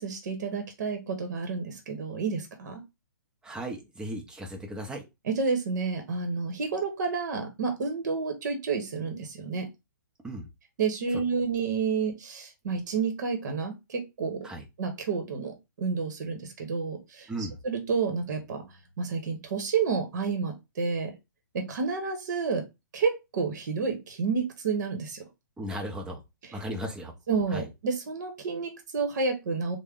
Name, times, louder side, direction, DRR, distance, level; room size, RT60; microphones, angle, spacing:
voice 1, 0.0-2.8 5.2-9.7 10.8-14.4 14.8-18.6 19.0-21.1 21.5-22.6 22.9-25.2 27.3-29.8, right 5 dB, 60° right, 6 dB, 0.9 m, -30 dB
voice 2, 3.4-5.0 10.2-10.5 11.1-11.2 14.4-14.6 17.3-17.6 25.6-26.2 26.5-27.1 27.5-27.7, right 1 dB, 5° right, 2 dB, 0.6 m, -36 dB
3.5 x 2.1 x 3.6 m, 0.23 s
hypercardioid pair, 145°, 11 cm